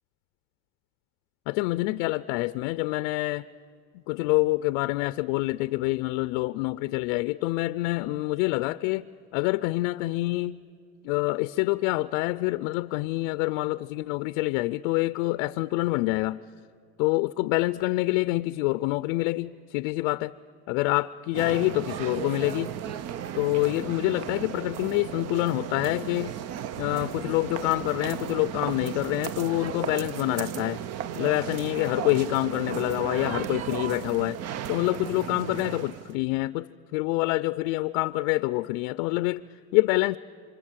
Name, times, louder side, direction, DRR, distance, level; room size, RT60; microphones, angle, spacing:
voice 1, 1.5-3.5 4.1-9.1 9.3-10.6 11.0-16.4 17.0-20.3 20.7-22.7 23.3-26.4 26.7-30.8 31.2-34.4 34.7-39.4 39.7-40.2, left 20 dB, 80° left, 0.5 m, -26 dB
sound 1, 21.3-36.2, right 10 dB, 40° right, 0.6 m, -35 dB
28.0 x 25.0 x 7.4 m
cardioid pair, 140°, 38 cm